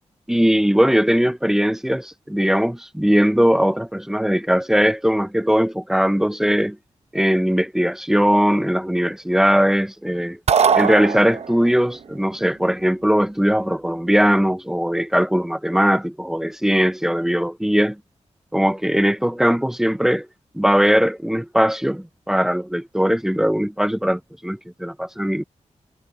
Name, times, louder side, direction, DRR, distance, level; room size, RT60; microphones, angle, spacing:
voice 1, 0.3-6.8 7.1-10.4 10.7-18.0 18.5-20.3 20.5-25.4, equal, 5° right, 0.5 m, -19 dB
sound 1, 10.5-11.8, right 6 dB, 65° right, 0.7 m, -19 dB
wide cardioid pair, 120°, 12 cm